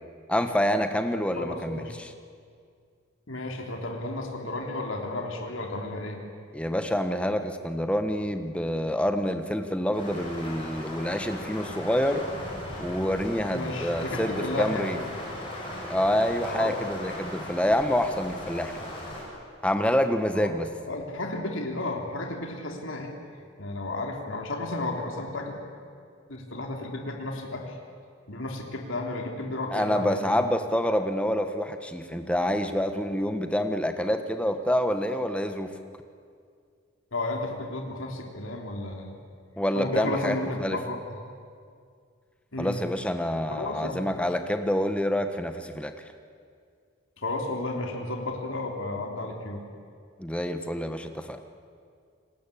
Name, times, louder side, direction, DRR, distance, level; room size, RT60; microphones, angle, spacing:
voice 1, 0.3-2.1 6.5-12.3 12.8-15.0 15.8-18.9 19.6-20.7 29.7-35.7 39.6-40.8 42.6-45.9 50.2-51.4, equal, 5° left, 7 dB, 1.3 m, -27 dB
voice 2, 1.3-1.9 3.3-6.2 13.5-14.9 16.5-16.8 20.3-20.6 20.9-23.1 23.6-25.6 26.3-27.8 28.3-30.4 37.1-39.2 39.7-41.0 42.5-42.8 43.5-44.1 47.2-49.6, left 2 dB, 65° left, 2 dB, 3.5 m, -33 dB
sound 1, 9.9-19.2, left 1 dB, 25° left, 7.8 m, -38 dB
29.0 x 20.0 x 8.7 m, 2.2 s
head